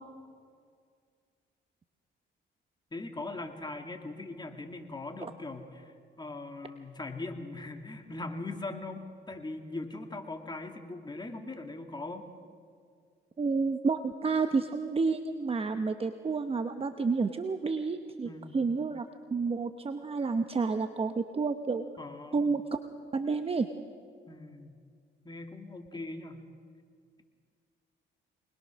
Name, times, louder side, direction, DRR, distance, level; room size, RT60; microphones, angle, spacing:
voice 1, 2.9-12.3 18.2-18.6 22.0-22.4 24.3-24.8 25.2-26.4, left 2 dB, 20° left, 4 dB, 2.4 m, -40 dB
voice 2, 13.4-21.8 22.3-22.8 23.1-23.7, right 4 dB, 30° right, 8 dB, 0.9 m, -30 dB
24.5 x 20.5 x 6.4 m, 2.2 s
cardioid pair, 90°, 20 cm